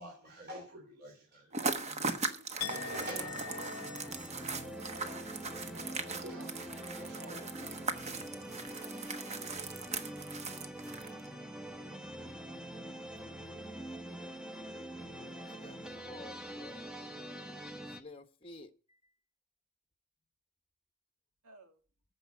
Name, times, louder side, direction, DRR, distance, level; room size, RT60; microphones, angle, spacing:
voice 1, 0.0-2.3 2.7-3.3 5.5-8.0, right 1 dB, 45° right, 3.0 m, -48 dB
sound 1, 1.5-11.3, right 4 dB, 30° right, 1.2 m, -39 dB
Chink clink, 2.6-8.5 8.8-9.2, left 9 dB, 90° left, 0.7 m, -47 dB
sound 2, 2.6-18.0, right 1 dB, 5° right, 1.0 m, -45 dB
voice 2, 2.9-4.0 21.4-21.8, right 2 dB, 80° right, 2.4 m, -54 dB
voice 3, 15.5-16.9 17.9-19.0, left 3 dB, 25° left, 1.0 m, -52 dB
14.5 x 5.4 x 9.3 m
head